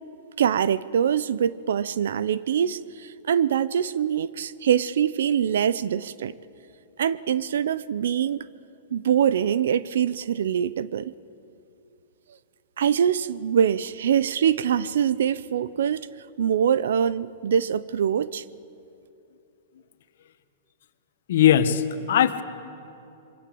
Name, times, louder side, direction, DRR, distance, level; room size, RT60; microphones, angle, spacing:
voice 1, 0.4-6.3 7.0-8.5 8.9-11.1 12.8-16.1 16.4-18.4, right 8 dB, 75° right, 0.7 m, -24 dB
voice 2, 21.3-22.4, left 10 dB, 60° left, 1.4 m, -19 dB
26.5 x 23.5 x 7.8 m
supercardioid pair, 170°, 0 cm